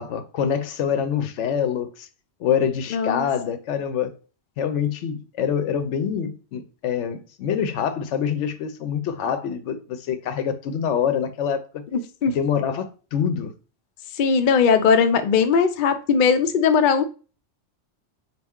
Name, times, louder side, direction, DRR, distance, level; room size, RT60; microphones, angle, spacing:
voice 1, 0.0-2.1 2.4-4.1 4.6-11.8 12.3-13.5, left 8 dB, 80° left, 0.9 m, -25 dB
voice 2, 2.9-3.3 11.9-12.3 14.2-17.0, left 6 dB, 60° left, 0.5 m, -19 dB
4.2 x 2.5 x 3.6 m
omnidirectional pair, 1.2 m